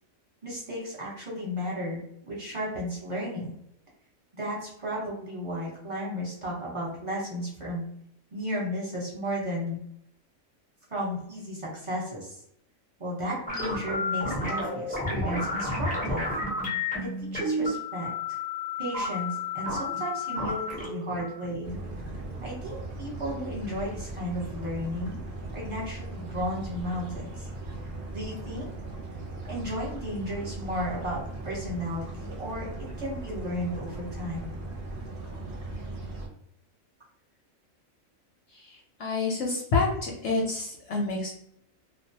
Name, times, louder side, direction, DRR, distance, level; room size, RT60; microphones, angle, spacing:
voice 1, 0.4-2.0 2.3-3.5 4.3-7.8 8.3-9.8 10.9-12.4 13.0-16.3 16.9-18.4 18.8-21.8 22.4-25.1 25.5-27.5 28.1-28.7 29.5-34.5, equal, 25° right, -5 dB, 0.9 m, -34 dB
sound 1, 13.5-22.4, left 2 dB, 15° left, 0.3 m, -31 dB
sound 2, 21.6-36.3, right 2 dB, 50° right, 0.7 m, -38 dB
voice 2, 39.0-41.3, left 3 dB, 65° left, -2 dB, 0.8 m, -28 dB
2.3 x 2.2 x 2.7 m, 0.72 s
omnidirectional pair, 1.4 m